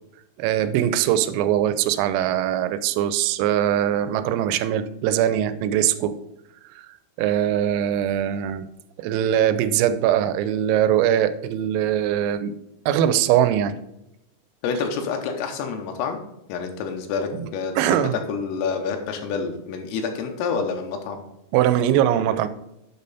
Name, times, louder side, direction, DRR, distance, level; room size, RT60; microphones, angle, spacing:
voice 1, 0.4-6.2 6.7-8.7 9.0-12.5 12.9-13.8 17.4-17.5 17.8-18.2 21.5-22.5, right 11 dB, 90° right, 10 dB, 3.3 m, -21 dB
voice 2, 14.6-16.2 16.5-21.2, left 5 dB, 80° left, 4 dB, 3.3 m, -28 dB
8.7 x 5.5 x 4.0 m, 0.88 s
omnidirectional pair, 5.9 m